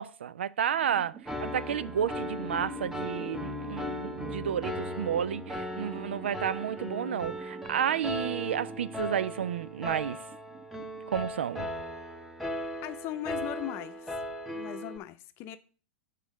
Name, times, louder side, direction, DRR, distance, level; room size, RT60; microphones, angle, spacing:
voice 1, 0.0-10.2 11.1-11.7, right 9 dB, 70° right, 0.4 m, -31 dB
sound 1, 0.7-11.5, right 5 dB, 30° right, 1.4 m, -47 dB
Piano, 1.3-15.0, left 1 dB, 5° right, 1.0 m, -37 dB
voice 2, 12.8-14.2 14.5-15.6, left 12 dB, 40° left, 0.7 m, -39 dB
7.3 x 3.9 x 6.2 m
figure-of-eight pair, 100°, 6 cm